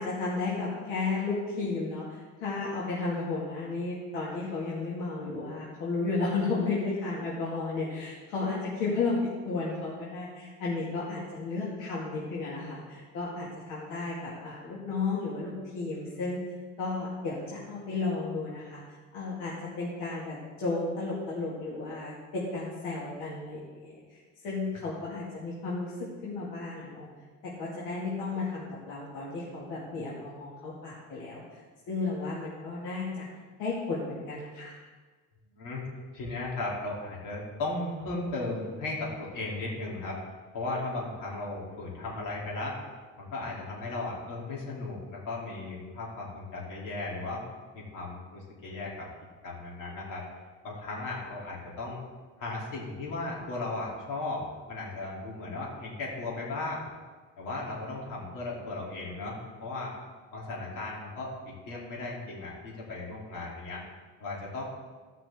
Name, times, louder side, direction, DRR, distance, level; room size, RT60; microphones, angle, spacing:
voice 1, 0.0-16.4 16.8-18.8 19.1-24.2 24.4-25.9 26.2-27.1 27.4-31.4 31.9-33.3 33.6-34.7, left 3 dB, 85° left, -6 dB, 2.2 m, -33 dB
voice 2, 36.1-40.2 40.5-42.8 43.2-47.4 47.7-49.1 49.4-50.2 50.6-52.0 52.4-56.9 57.4-59.9 60.3-63.8 64.2-64.6, left 2 dB, 65° left, -4 dB, 3.0 m, -36 dB
15.0 x 5.8 x 3.6 m, 1.4 s
cardioid pair, 135°, 32 cm